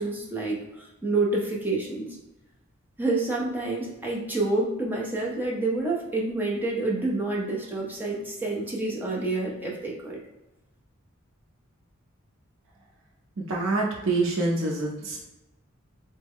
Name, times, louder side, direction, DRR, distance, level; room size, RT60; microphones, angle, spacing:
voice 1, 0.0-2.2 3.0-10.2, right 2 dB, 10° right, -3 dB, 0.5 m, -28 dB
voice 2, 13.4-15.3, right 2 dB, 70° right, -2 dB, 0.5 m, -26 dB
3.4 x 2.1 x 3.5 m, 0.99 s
head